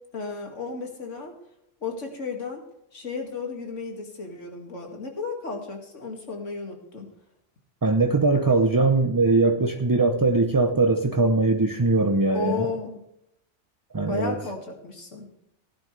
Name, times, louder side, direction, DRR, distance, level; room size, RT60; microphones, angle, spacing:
voice 1, 0.1-1.3 1.8-2.6 2.9-7.1 12.3-13.0 14.1-15.3, left 4 dB, 75° left, 2 dB, 2.5 m, -33 dB
voice 2, 7.8-12.7 13.9-14.4, right 3 dB, 25° right, 5 dB, 0.5 m, -21 dB
17.0 x 10.5 x 3.3 m, 0.81 s
omnidirectional pair, 1.3 m